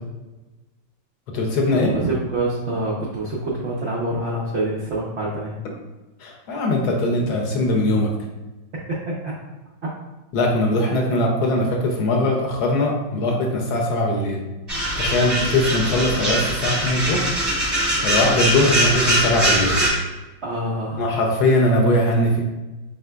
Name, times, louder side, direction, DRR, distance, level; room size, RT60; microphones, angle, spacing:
voice 1, 1.3-1.9 6.2-8.1 10.3-14.4 15.0-17.2 18.0-19.8 21.0-22.4, left 1 dB, 70° left, 1 dB, 1.0 m, -20 dB
voice 2, 1.9-5.6 8.9-9.0 9.2-9.3 20.4-21.1, right 1 dB, 80° right, -5 dB, 0.6 m, -26 dB
sound 1, 14.7-19.9, right 1 dB, 25° right, 0.6 m, -22 dB
4.8 x 3.7 x 2.2 m, 1.1 s
omnidirectional pair, 2.1 m